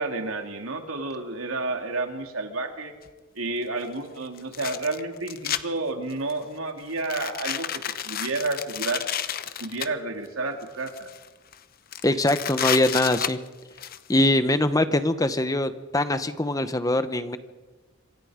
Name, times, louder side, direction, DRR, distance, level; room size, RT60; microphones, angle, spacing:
voice 1, 0.0-2.9 3.3-9.0 9.6-11.1, right 3 dB, 80° right, 4 dB, 2.9 m, -30 dB
sound 1, 3.1-3.2 4.4-5.6 6.1-6.4 7.0-9.9 10.6-11.3 11.5-11.6 11.9-14.0, left 9 dB, 45° left, 0.8 m, -31 dB
voice 2, 12.0-13.4 14.1-17.4, left 1 dB, 15° left, 11 dB, 1.0 m, -23 dB
27.0 x 25.0 x 5.1 m, 1.2 s
head